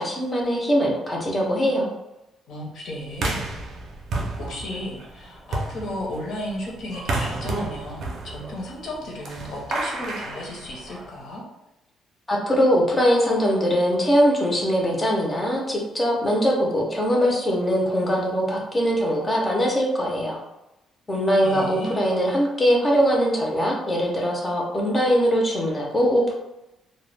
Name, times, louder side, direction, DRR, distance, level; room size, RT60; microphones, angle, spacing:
voice 1, 0.0-1.9 12.3-20.4 21.1-26.3, equal, 15° left, -1 dB, 0.5 m, -21 dB
voice 2, 2.5-3.4 4.4-11.4 21.4-22.0, left 1 dB, 50° left, -2 dB, 0.7 m, -34 dB
sound 1, 3.1-11.2, right 2 dB, 50° right, 0.5 m, -32 dB
2.1 x 2.1 x 3.1 m, 0.92 s
cardioid pair, 170°, 0 cm